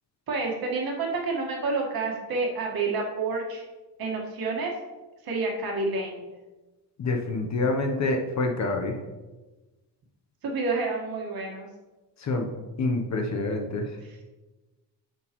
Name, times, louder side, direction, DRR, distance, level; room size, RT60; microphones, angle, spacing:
voice 1, 0.3-3.6 4.0-4.7 5.2-6.3 10.4-11.7 14.0-14.2, right 3 dB, 55° right, 0 dB, 1.6 m, -29 dB
voice 2, 7.0-8.9 12.2-12.5 12.8-13.9, left 2 dB, 40° left, 3 dB, 0.8 m, -27 dB
9.2 x 6.2 x 3.0 m, 1.2 s
wide cardioid pair, 175°, 41 cm